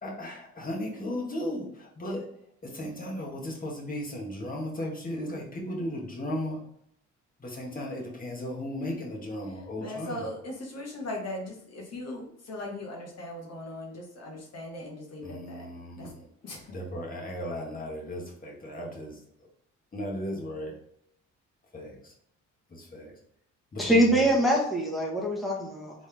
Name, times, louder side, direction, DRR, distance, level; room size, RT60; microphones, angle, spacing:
voice 1, 0.0-2.3 2.6-6.6 7.4-10.2 15.2-16.2 16.7-19.2 19.9-20.7 21.7-22.1 22.7-23.1 23.7-24.3, left 1 dB, 30° left, -2 dB, 1.6 m, -36 dB
voice 2, 9.8-15.7 15.9-16.7 17.4-17.8, left 1 dB, 55° left, -1 dB, 1.4 m, -39 dB
voice 3, 23.8-25.9, right 1 dB, ahead, -3 dB, 1.4 m, -24 dB
4.0 x 3.5 x 3.4 m, 0.73 s
cardioid pair, 90°, 30 cm